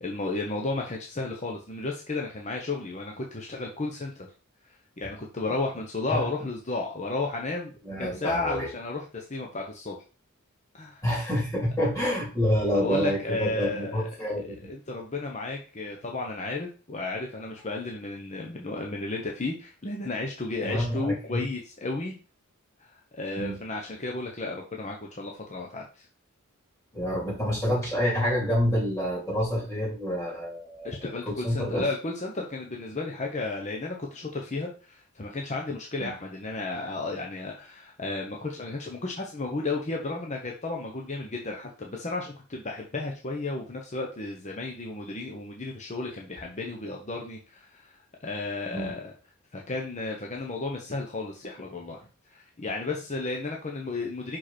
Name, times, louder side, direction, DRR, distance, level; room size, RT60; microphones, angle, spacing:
voice 1, 0.0-4.3 4.6-7.7 8.0-10.0 10.7-11.0 12.7-14.1 14.4-22.1 22.8-26.1 30.8-49.1 49.5-52.0 52.3-54.4, left 3 dB, 35° left, 0 dB, 1.0 m, -33 dB
voice 2, 7.8-8.7 11.0-14.7 20.6-21.1 23.4-23.6 26.9-31.0 31.3-31.9 36.0-36.1 48.7-48.9, equal, 15° left, -4 dB, 3.7 m, -28 dB
6.0 x 5.1 x 4.3 m, 0.35 s
head